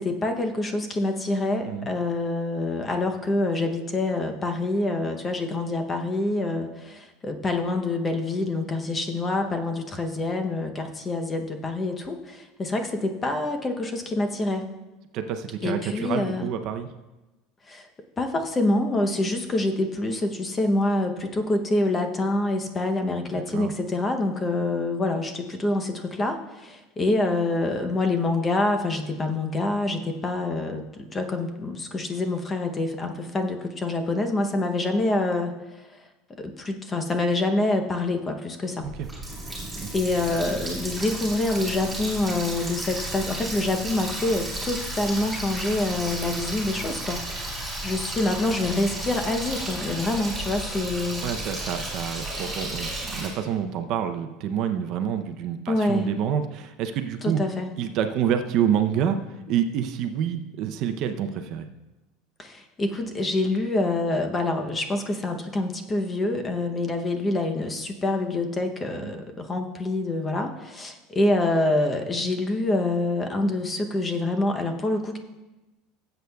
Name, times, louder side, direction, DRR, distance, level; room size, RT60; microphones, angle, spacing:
voice 1, 0.0-14.7 15.6-16.5 17.7-17.9 18.2-35.9 36.4-38.9 39.9-47.2 47.8-51.2 55.7-56.1 57.2-57.7 62.4-75.2, left 2 dB, 15° left, 5 dB, 0.7 m, -26 dB
voice 2, 15.1-16.9 23.3-23.7 38.8-39.1 39.8-39.9 51.2-57.4 57.8-59.2 59.5-61.7 69.0-69.2, right 9 dB, 45° right, 7 dB, 0.6 m, -27 dB
Water tap faucet, 38.8-53.3, right 1 dB, 10° right, 3.5 m, -33 dB
18.0 x 8.0 x 2.3 m, 1.1 s
cardioid pair, 165°, 0 cm